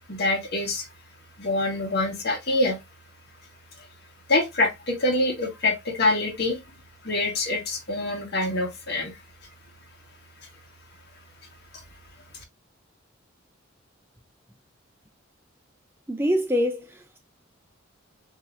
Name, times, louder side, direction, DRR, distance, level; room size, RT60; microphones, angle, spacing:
voice 1, 0.1-0.9 1.4-2.8 4.3-6.6 7.0-9.2, left 2 dB, 55° left, 1.6 m, -25 dB
voice 2, 16.1-17.2, equal, 10° right, 0.5 m, -25 dB
7.1 x 2.9 x 2.4 m
head